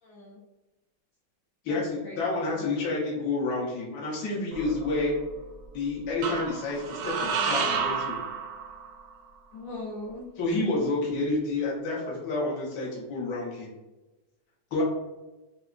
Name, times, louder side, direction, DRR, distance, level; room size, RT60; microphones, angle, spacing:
voice 1, 0.0-0.4 1.7-2.2 2.5-2.7 9.5-10.3, left 2 dB, 70° left, -3 dB, 0.8 m, -40 dB
voice 2, 1.6-5.2 5.7-8.2 10.4-13.7 14.7-14.8, left 2 dB, 55° left, -5 dB, 1.3 m, -29 dB
sound 1, 4.5-5.3 6.2-9.1, right 6 dB, 75° right, 1.0 m, -31 dB
5.8 x 2.1 x 2.5 m, 1.1 s
omnidirectional pair, 2.1 m